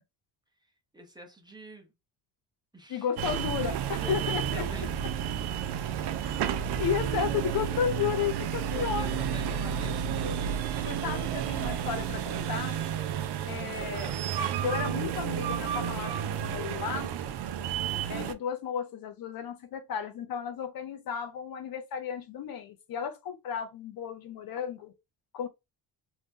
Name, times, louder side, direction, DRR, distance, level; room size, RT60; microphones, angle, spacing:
voice 1, 0.6-1.9 2.7-3.1 3.8-4.9 8.7-10.3 13.8-14.3, right 1 dB, 10° right, 0.7 m, -46 dB
voice 2, 2.9-4.7 6.8-9.1 10.8-12.8 13.5-14.1 14.6-17.1 18.1-24.9 25.3-25.5, left 8 dB, 55° left, 0.5 m, -33 dB
sound 1, 3.2-18.3, right 9 dB, 65° right, 0.5 m, -31 dB
2.7 x 2.1 x 3.4 m
cardioid pair, 105°, 44 cm